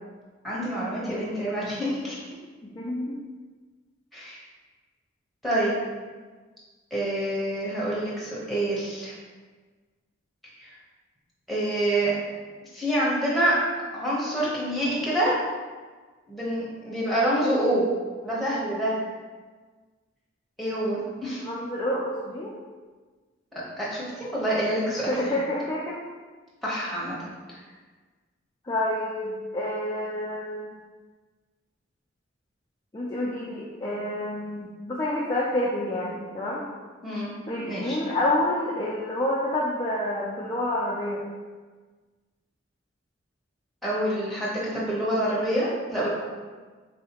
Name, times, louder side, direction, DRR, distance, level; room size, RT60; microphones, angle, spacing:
voice 1, 0.4-2.2 4.1-4.4 5.4-5.8 6.9-9.1 10.6-10.7 11.5-12.2 12.7-13.6 13.9-15.4 16.3-17.9 18.2-19.0 20.6-21.4 23.5-25.1 26.6-27.1 37.0-37.3 37.6-38.0 43.8-46.1, right 1 dB, ahead, -7 dB, 0.9 m, -27 dB
voice 2, 2.6-3.2 21.4-22.5 25.1-26.0 28.6-30.8 32.9-36.6 37.5-41.2 46.0-46.1, left 1 dB, 20° left, -6 dB, 0.4 m, -28 dB
4.2 x 2.7 x 2.9 m, 1.4 s
head